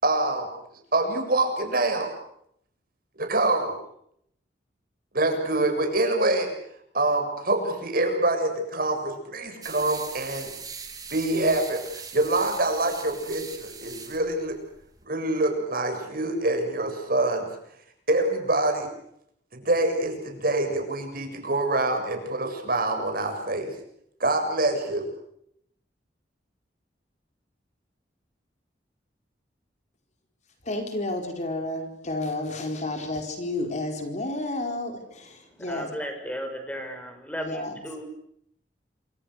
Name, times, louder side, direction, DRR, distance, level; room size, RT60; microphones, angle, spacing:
voice 1, 0.0-0.5 0.9-2.1 3.2-3.8 5.1-6.5 6.9-10.5 11.1-11.8 12.1-14.5 15.1-17.5 18.1-18.9 19.5-23.7 24.2-25.1, right 2 dB, 55° right, 4 dB, 7.3 m, -25 dB
sound 1, 9.6-15.0, right 5 dB, 20° right, 3.4 m, -41 dB
voice 2, 30.6-36.0 37.4-37.8, left 2 dB, 40° left, 4 dB, 4.7 m, -31 dB
voice 3, 35.6-38.1, equal, 10° left, 6 dB, 5.8 m, -35 dB
27.5 x 25.5 x 6.6 m, 0.72 s
head